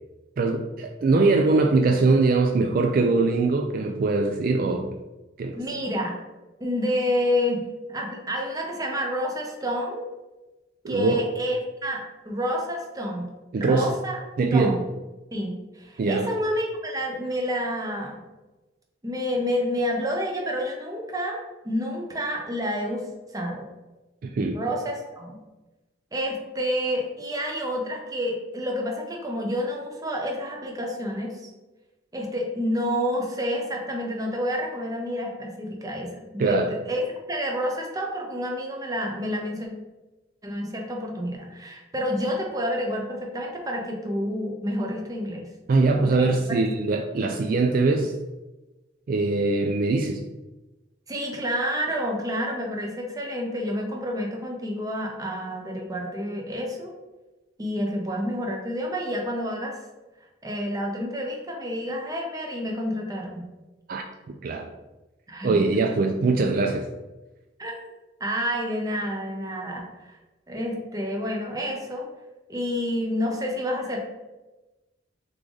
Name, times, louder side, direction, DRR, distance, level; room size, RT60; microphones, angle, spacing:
voice 1, 0.4-4.9 5.4-5.6 10.8-11.2 13.5-13.9 14.4-14.8 16.0-16.3 24.2-24.6 36.4-36.7 45.7-48.1 49.1-50.2 63.9-64.0 64.4-64.7 65.4-66.9, right 3 dB, 50° right, 3 dB, 0.3 m, -22 dB
voice 2, 5.6-6.1 6.6-10.1 10.9-13.3 13.6-14.2 14.5-14.9 15.3-18.2 19.0-23.1 23.3-23.6 24.5-25.4 26.1-31.5 32.1-39.7 40.4-45.5 46.0-46.3 51.1-56.9 57.6-59.8 60.4-63.4 65.3-65.6 67.6-67.7 68.2-70.1 70.5-72.1 72.5-74.0, equal, 20° right, 0 dB, 0.7 m, -29 dB
3.6 x 3.3 x 3.8 m, 1.1 s
head